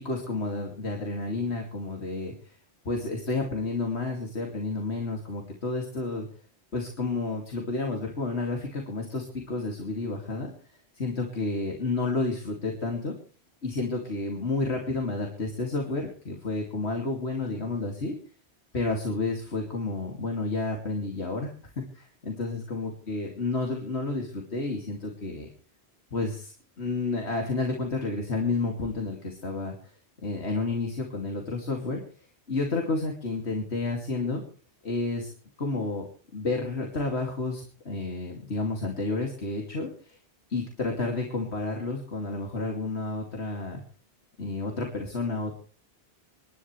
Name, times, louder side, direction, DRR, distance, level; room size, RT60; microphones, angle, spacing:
voice 1, 0.0-2.6 2.8-6.3 6.7-10.5 10.9-13.1 13.6-18.1 18.7-21.5 21.8-25.5 26.1-29.7 30.2-32.0 32.5-34.4 34.8-35.3 35.6-36.1 36.3-40.2 40.5-43.8 44.4-45.6, left 3 dB, 85° left, 1 dB, 2.9 m, -30 dB
27.5 x 11.5 x 3.3 m, 0.40 s
omnidirectional pair, 1.1 m